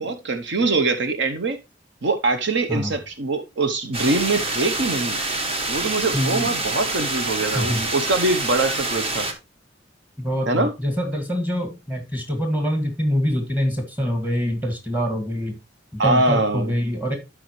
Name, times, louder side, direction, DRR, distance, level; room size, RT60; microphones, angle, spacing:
voice 1, 0.0-1.6 2.0-5.2 5.7-9.3 10.5-10.7 16.0-16.7, right 3 dB, 65° right, 0.8 m, -23 dB
sound 1, 3.9-9.3, right 2 dB, 30° right, 1.3 m, -26 dB
voice 2, 6.1-6.6 7.5-7.8 10.2-15.6 15.9-17.2, equal, 10° right, 1.9 m, -25 dB
12.0 x 4.9 x 3.1 m
head